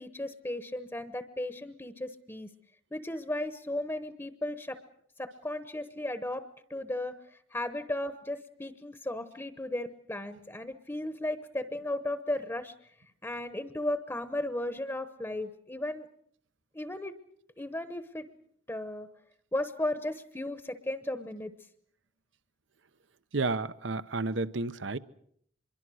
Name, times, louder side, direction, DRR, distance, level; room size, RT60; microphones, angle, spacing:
voice 1, 0.0-2.5 2.9-4.8 5.2-12.7 13.2-16.1 16.7-17.1 17.6-18.3 18.7-19.1 19.5-21.5, left 1 dB, 15° left, 1.0 m, -35 dB
voice 2, 23.3-25.0, right 3 dB, 65° right, 0.9 m, -31 dB
25.5 x 22.5 x 6.4 m
head